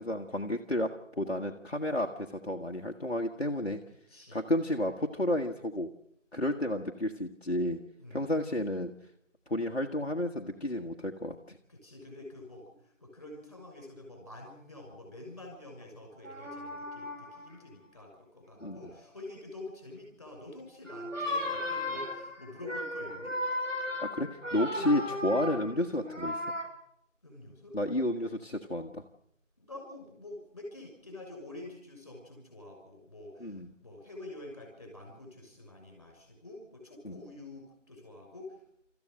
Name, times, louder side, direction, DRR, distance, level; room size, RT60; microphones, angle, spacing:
voice 1, 0.0-3.8 4.3-5.9 6.3-7.8 8.1-8.9 9.5-11.6 18.6-18.8 24.0-26.4 27.7-29.0 33.4-33.7 37.0-37.2, left 1 dB, 55° left, 1 dB, 1.5 m, -31 dB
voice 2, 4.1-4.4 8.0-8.3 11.7-23.4 24.8-24.9 25.4-25.5 27.2-27.8 28.1-28.3 29.6-38.8, left 2 dB, 20° left, 1 dB, 6.3 m, -47 dB
sound 1, 16.2-17.5 18.6-18.9 20.9-26.6, left 1 dB, 80° right, 6.0 m, -36 dB
28.0 x 14.5 x 6.6 m, 0.72 s
figure-of-eight pair, 175°, 38 cm